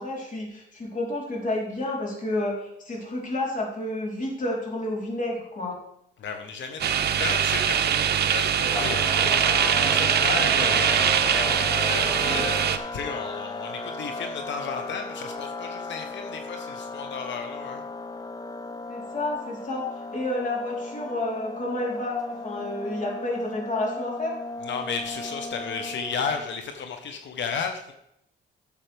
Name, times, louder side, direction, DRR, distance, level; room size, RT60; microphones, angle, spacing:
voice 1, 0.0-5.8 18.9-19.8 20.1-24.3, left 1 dB, 40° left, -2 dB, 3.6 m, -30 dB
voice 2, 6.2-17.8 24.6-27.9, left 5 dB, 65° left, 6 dB, 1.1 m, -34 dB
sound 1, 6.8-12.8, right 9 dB, 55° right, 0.7 m, -22 dB
sound 2, 8.7-26.6, left 3 dB, 20° left, 0.8 m, -35 dB
12.0 x 7.4 x 3.4 m, 0.78 s
cardioid pair, 90°, 20 cm